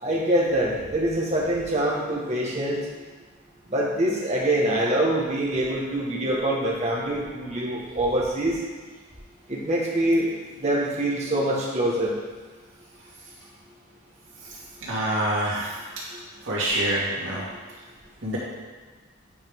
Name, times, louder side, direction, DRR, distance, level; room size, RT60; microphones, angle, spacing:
voice 1, 0.0-2.8 3.7-8.6 9.5-10.3 10.6-12.1 16.1-16.2, right 1 dB, 35° right, -4 dB, 1.5 m, -24 dB
voice 2, 14.8-15.7 16.4-17.4 18.2-18.4, right 1 dB, 75° right, -7 dB, 2.4 m, -26 dB
8.6 x 5.3 x 3.6 m, 1.4 s
head